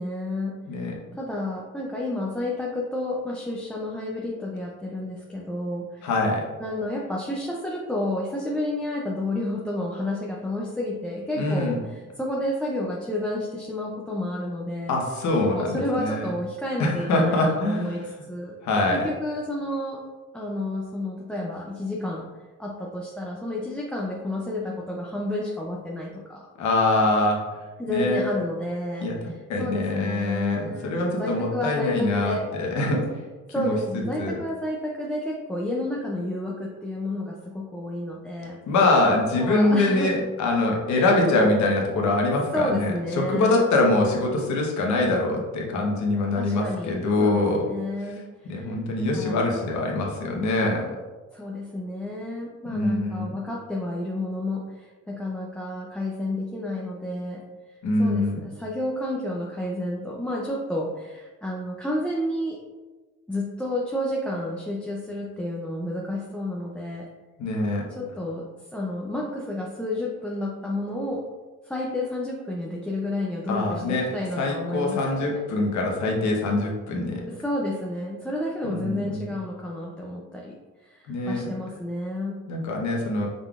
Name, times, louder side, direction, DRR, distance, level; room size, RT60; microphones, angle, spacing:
voice 1, 0.0-6.1 6.6-14.9 15.5-18.6 18.9-20.0 20.3-22.3 22.6-26.5 27.8-30.9 31.2-32.4 33.5-38.6 39.4-40.1 40.9-41.2 42.5-43.6 46.4-48.7 49.1-49.4 51.3-57.4 58.0-62.6 63.3-67.1 68.0-71.3 71.6-75.4 77.3-82.4, left 1 dB, 5° left, -4 dB, 0.3 m, -30 dB
voice 2, 6.0-6.4 11.4-11.8 14.9-16.2 16.8-18.1 18.6-19.0 26.6-27.4 27.9-28.3 29.0-29.2 29.5-33.2 33.6-34.4 38.7-47.6 48.5-50.9 52.7-53.3 57.8-58.4 67.4-67.8 73.5-74.1 74.4-77.2 78.6-79.3 81.1-81.5 82.5-83.3, left 2 dB, 65° left, 0 dB, 1.1 m, -24 dB
5.3 x 3.8 x 2.4 m, 1.3 s
cardioid pair, 140°, 31 cm